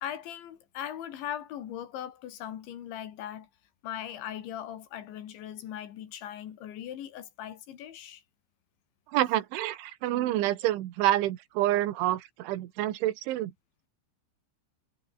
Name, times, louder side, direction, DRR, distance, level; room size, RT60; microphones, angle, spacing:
voice 1, 0.0-3.5 3.8-8.2, left 10 dB, 75° left, 4.6 m, -39 dB
voice 2, 9.1-13.5, right 14 dB, 80° right, 4.0 m, -28 dB
omnidirectional pair, 5.5 m